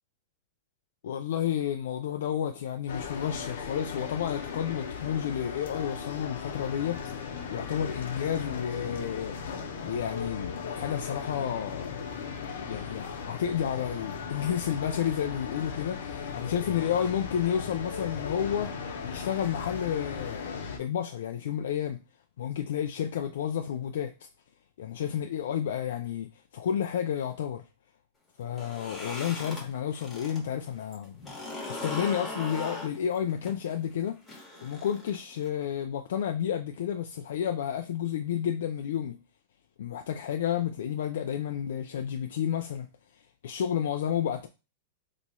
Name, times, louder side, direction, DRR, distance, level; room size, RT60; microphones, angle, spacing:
voice 1, 1.0-7.0 7.5-9.4 9.8-12.1 12.7-18.7 19.0-22.0 22.4-24.1 24.8-27.6 28.4-31.2 31.7-34.2 34.6-39.2 39.8-42.9 43.4-44.5, left 9 dB, 75° left, 0.4 m, -31 dB
sound 1, 2.9-20.8, left 6 dB, 90° left, 0.8 m, -37 dB
sound 2, 28.4-30.4 30.7-35.5, left 2 dB, 5° left, 1.1 m, -39 dB
3.0 x 2.3 x 4.1 m
supercardioid pair, 165°, 0 cm